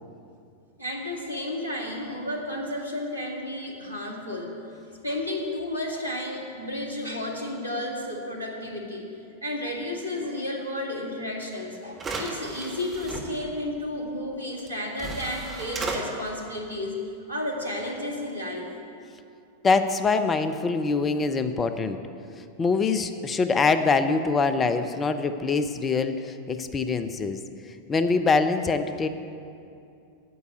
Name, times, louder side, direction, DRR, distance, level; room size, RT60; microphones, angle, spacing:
voice 1, 0.8-4.5 5.0-9.1 9.4-17.0 17.3-18.7, left 1 dB, 85° right, -1 dB, 2.0 m, -32 dB
sound 1, 11.4-11.5 11.9-13.2 14.6-14.7 15.0-16.0, right 4 dB, 20° right, 1.7 m, -34 dB
voice 2, 19.6-22.0 22.4-27.4 27.9-29.1, left 4 dB, 20° left, 9 dB, 0.7 m, -24 dB
9.5 x 8.3 x 9.3 m, 2.6 s
figure-of-eight pair, 90°, 0 cm